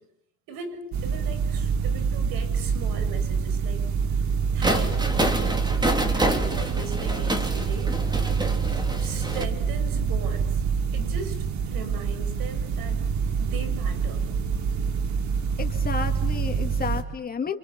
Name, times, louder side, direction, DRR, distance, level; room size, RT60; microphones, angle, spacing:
voice 1, 0.5-3.8 4.2-5.5 6.1-8.0 8.7-10.6 10.9-13.0 13.4-14.3, right 5 dB, 65° right, 8 dB, 7.4 m, -39 dB
sound 1, 0.9-17.0, right 6 dB, 50° right, 3.3 m, -26 dB
sound 2, 4.6-9.4, right 1 dB, 10° right, 3.3 m, -27 dB
voice 2, 15.6-17.6, left 6 dB, 25° left, 5 dB, 2.5 m, -31 dB
29.0 x 27.0 x 7.5 m, 0.72 s
cardioid pair, 130°, 37 cm